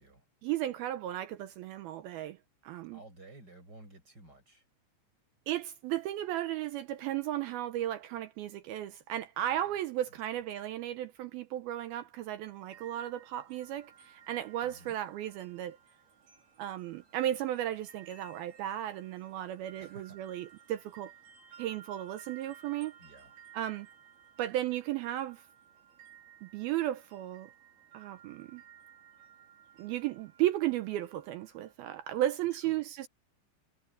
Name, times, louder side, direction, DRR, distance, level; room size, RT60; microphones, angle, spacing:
voice 1, 0.4-2.4 2.6-3.0 5.5-15.8 16.6-21.1 21.6-22.9 23.5-23.9 24.4-25.4 26.4-27.5 27.9-28.6 29.8-33.1, right 13 dB, 80° right, 2.2 m, -35 dB
voice 2, 2.9-4.6 9.4-9.8 10.3-10.4 14.6-14.9 19.8-20.2 23.0-23.3 32.5-32.8, right 2 dB, 20° right, 8.5 m, -54 dB
sound 1, 12.7-31.7, right 8 dB, 60° right, 5.9 m, -58 dB
omnidirectional pair, 5.2 m